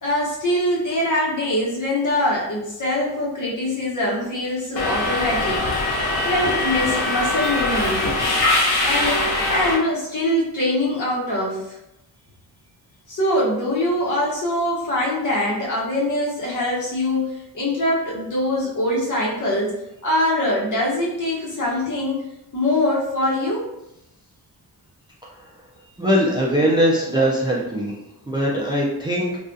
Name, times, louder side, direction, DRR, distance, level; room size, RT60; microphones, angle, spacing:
voice 1, 0.0-5.6 6.2-8.0 8.8-11.8 13.1-19.7 20.0-22.2 22.5-23.6, left 1 dB, 50° left, -4 dB, 1.0 m, -23 dB
Subway metro underground, 4.8-9.7, left 2 dB, 75° left, 0.7 m, -22 dB
voice 2, 26.0-28.0 28.3-29.4, equal, 10° right, -4 dB, 0.4 m, -20 dB
2.4 x 2.3 x 2.5 m, 0.85 s
cardioid pair, 95°, 39 cm